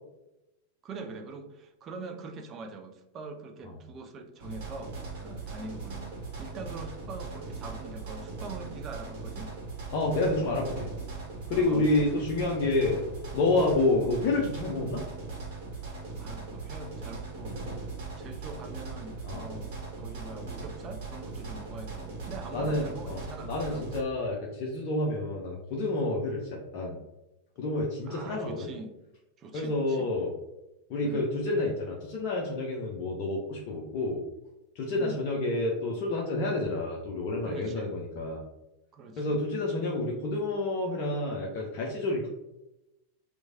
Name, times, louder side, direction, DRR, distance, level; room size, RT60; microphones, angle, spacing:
voice 1, 0.8-4.9 5.2-6.1 6.4-9.5 11.5-12.3 16.2-17.9 18.2-23.9 28.0-29.0 29.4-30.1 31.0-31.2 34.9-35.2 37.4-37.9 38.9-39.4, right 3 dB, 30° right, 5 dB, 0.4 m, -43 dB
sound 1, 4.4-24.0, right 3 dB, 50° right, 0.9 m, -39 dB
voice 2, 9.9-10.9 11.5-13.0 13.3-15.0 19.2-19.5 22.5-23.2 23.5-27.0 27.6-28.7 29.5-30.3 30.9-34.2 34.8-38.4 39.2-42.3, left 2 dB, 40° left, -2 dB, 0.5 m, -29 dB
3.0 x 2.1 x 2.5 m, 0.93 s
figure-of-eight pair, 90°, 0 cm